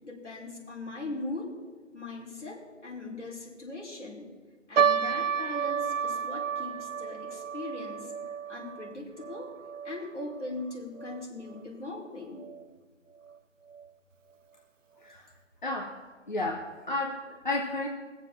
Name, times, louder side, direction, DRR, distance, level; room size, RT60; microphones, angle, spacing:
voice 1, 0.0-1.5 1.9-4.3 4.7-8.1 8.5-9.5 9.8-12.5, left 2 dB, 65° left, -3 dB, 5.1 m, -40 dB
sound 1, 4.8-11.3 11.5-11.6 12.4-12.7 13.3-13.4 13.7-13.9, right 7 dB, 80° right, 0.6 m, -31 dB
voice 2, 15.6-15.9 16.3-17.9, left 2 dB, 40° left, 0 dB, 1.1 m, -32 dB
20.5 x 7.3 x 7.3 m, 1.4 s
figure-of-eight pair, 165°, 38 cm